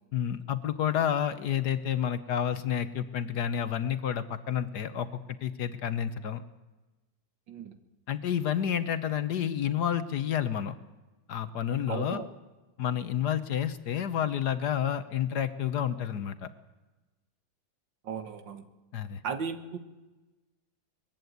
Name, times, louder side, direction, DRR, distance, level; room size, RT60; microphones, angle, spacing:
voice 1, 0.1-6.4 8.1-10.7 11.3-12.2 12.8-16.5 18.9-19.2, left 9 dB, 60° left, 12 dB, 1.3 m, -30 dB
voice 2, 11.9-12.3 18.0-18.7 19.2-19.8, right 6 dB, 65° right, 10 dB, 2.0 m, -36 dB
21.0 x 15.0 x 9.4 m, 1.1 s
omnidirectional pair, 2.2 m